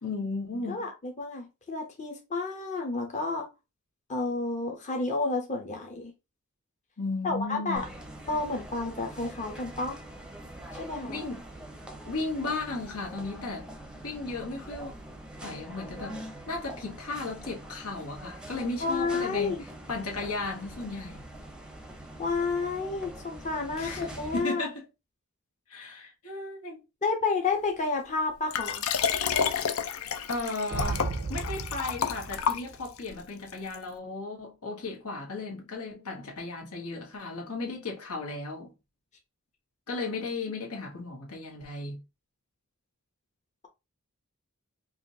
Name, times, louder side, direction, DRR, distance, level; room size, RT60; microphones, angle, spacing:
voice 1, 0.0-0.9 7.0-7.8 11.0-11.4 12.1-13.7 14.0-14.9 15.4-16.2 16.5-21.3 23.8-24.8 25.7-26.8 30.3-38.7 39.9-42.0, left 3 dB, 85° left, 1.5 m, -35 dB
voice 2, 0.7-3.5 4.1-6.1 7.2-7.8 8.3-10.0 10.8-11.2 18.8-19.6 22.2-24.7 27.0-28.8, left 3 dB, 35° left, 0.8 m, -30 dB
sound 1, 7.8-24.4, right 1 dB, 5° right, 0.6 m, -44 dB
Liquid, 28.5-33.1 33.7-33.8, left 7 dB, 65° left, 0.5 m, -30 dB
sound 2, 30.7-33.2, right 3 dB, 50° right, 0.5 m, -35 dB
4.8 x 2.5 x 2.8 m
head